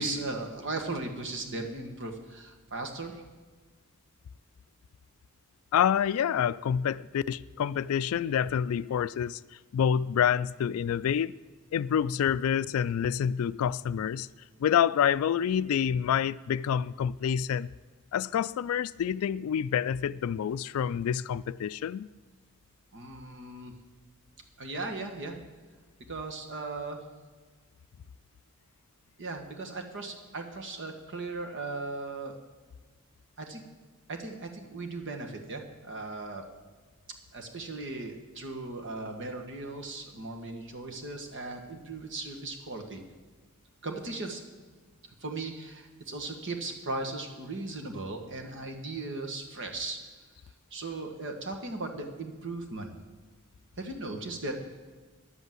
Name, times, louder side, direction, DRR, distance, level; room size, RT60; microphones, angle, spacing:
voice 1, 0.0-3.2 22.9-23.7 24.6-25.4 26.1-27.0 29.2-32.4 33.4-33.6 34.1-36.4 37.3-43.0 43.8-44.4 45.2-50.0 50.7-52.9 53.8-54.6, right 2 dB, 60° right, 1.6 m, -37 dB
voice 2, 5.7-9.4 9.7-11.3 11.7-14.3 14.6-17.7 18.1-22.1, left 8 dB, 70° left, 0.3 m, -27 dB
10.5 x 8.1 x 7.7 m
head